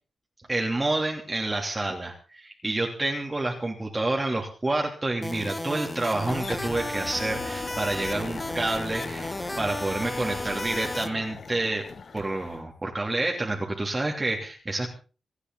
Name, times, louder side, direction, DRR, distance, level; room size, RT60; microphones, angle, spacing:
voice 1, 0.5-11.9 12.1-14.9, right 2 dB, 25° right, 0 dB, 3.1 m, -28 dB
sound 1, 5.2-11.1, left 1 dB, 15° left, 1.5 m, -34 dB
sound 2, 6.2-12.6, left 5 dB, 60° left, 1.4 m, -39 dB
27.5 x 9.9 x 3.9 m, 0.37 s
cardioid pair, 85°, 0 cm